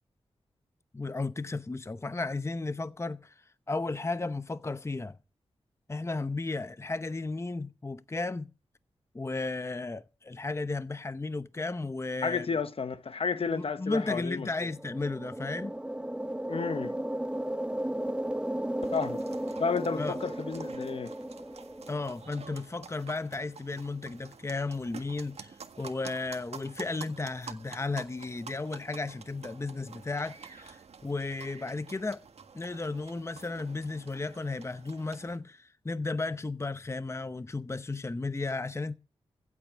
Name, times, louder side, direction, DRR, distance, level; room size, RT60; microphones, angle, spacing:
voice 1, 0.9-3.3 3.7-5.2 5.9-8.5 9.1-12.5 13.5-15.7 20.0-20.2 21.9-32.2 32.5-39.0, left 3 dB, 25° left, 0.8 m, -34 dB
voice 2, 12.2-14.7 16.5-17.0 18.9-19.2 19.6-21.1, left 5 dB, 60° left, 1.1 m, -32 dB
sound 1, 14.6-22.2, right 1 dB, 10° right, 0.9 m, -35 dB
sound 2, 18.8-35.4, right 5 dB, 75° right, 1.7 m, -49 dB
16.0 x 8.4 x 6.2 m
cardioid pair, 55°, 11 cm